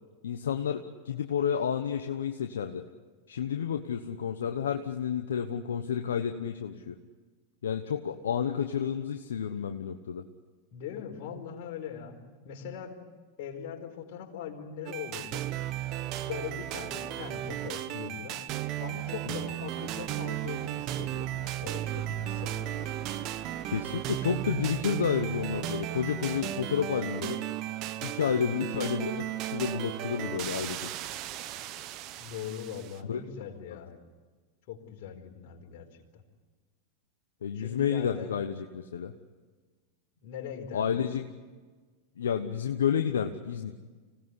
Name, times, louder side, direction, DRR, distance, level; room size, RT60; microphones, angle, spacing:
voice 1, 0.2-2.8 3.3-7.0 7.6-10.2 19.3-19.4 23.7-27.4 28.0-30.9 33.1-33.2 37.4-39.1 40.7-41.2 42.2-43.8, left 8 dB, 85° left, 5 dB, 1.1 m, -30 dB
voice 2, 10.7-12.2 12.4-13.0 13.4-15.5 16.2-18.4 18.8-23.0 32.2-34.0 34.7-35.9 36.1-36.2 37.5-38.4 40.2-41.0, left 8 dB, 60° left, 2 dB, 4.5 m, -41 dB
sound 1, 14.9-33.0, right 13 dB, 50° right, 1.3 m, -35 dB
25.5 x 18.0 x 9.8 m, 1.4 s
hypercardioid pair, 100°, 0 cm